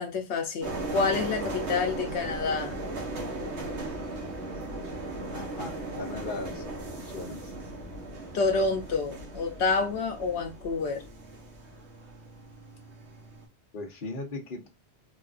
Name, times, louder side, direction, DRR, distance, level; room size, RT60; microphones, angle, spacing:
voice 1, 0.0-2.8 8.3-11.0, left 4 dB, 80° left, 1.0 m, -28 dB
sound 1, 0.6-13.5, right 2 dB, 85° right, 1.3 m, -37 dB
voice 2, 5.3-6.7 7.0-7.5 13.7-14.7, left 2 dB, 55° left, 1.1 m, -38 dB
3.9 x 2.4 x 2.3 m
omnidirectional pair, 1.1 m